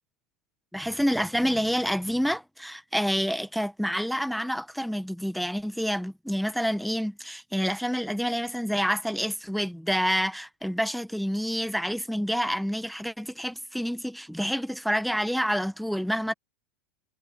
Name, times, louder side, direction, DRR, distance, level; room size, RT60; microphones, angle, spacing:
voice 1, 0.7-16.3, equal, ahead, 0.8 m, -28 dB
supercardioid pair, 145°, 7 cm